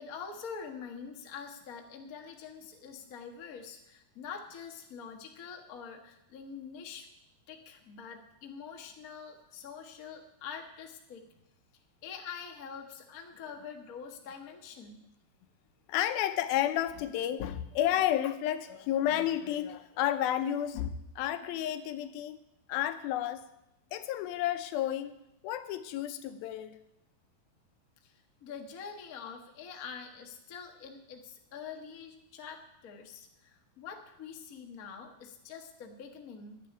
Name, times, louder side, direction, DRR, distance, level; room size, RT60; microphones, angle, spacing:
voice 1, 0.0-7.1 7.5-11.3 12.0-15.0 28.0-36.6, left 6 dB, 60° left, 3 dB, 0.9 m, -45 dB
voice 2, 15.9-22.4 22.7-23.4 23.9-25.1 25.4-26.8, left 11 dB, 80° left, 10 dB, 2.6 m, -31 dB
10.5 x 8.5 x 9.9 m, 0.85 s
omnidirectional pair, 4.3 m